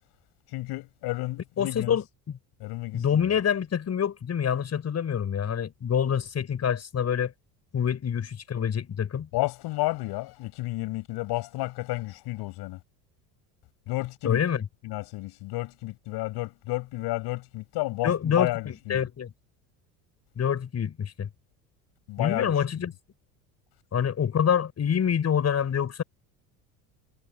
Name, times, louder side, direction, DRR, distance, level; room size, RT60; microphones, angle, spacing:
voice 1, 0.5-1.9 2.6-3.0 9.3-12.8 13.9-14.4 14.8-19.0 22.1-22.5, left 19 dB, 65° left, 5.3 m, -31 dB
voice 2, 1.6-2.4 2.9-7.3 7.7-9.3 14.2-14.7 18.0-19.3 20.3-21.3 22.2-22.9 23.9-26.0, left 8 dB, 35° left, 6.6 m, -26 dB
supercardioid pair, 85°, 42 cm